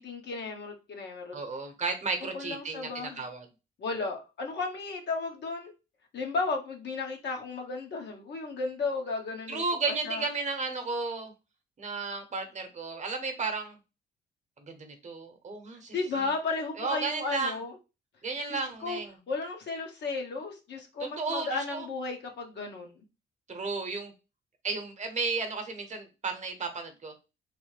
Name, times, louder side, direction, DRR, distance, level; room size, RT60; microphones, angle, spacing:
voice 1, 0.0-1.3 2.2-3.2 3.8-5.7 6.1-9.6 10.0-10.2 15.9-17.7 18.5-19.0 19.3-23.0, left 3 dB, 60° left, 1.0 m, -34 dB
voice 2, 1.3-3.5 9.5-11.3 11.8-13.8 14.6-15.9 16.8-17.6 18.2-19.1 21.0-21.9 23.5-24.1 24.6-27.1, right 4 dB, 35° right, 0.9 m, -33 dB
3.2 x 2.1 x 3.2 m
cardioid pair, 90°, 20 cm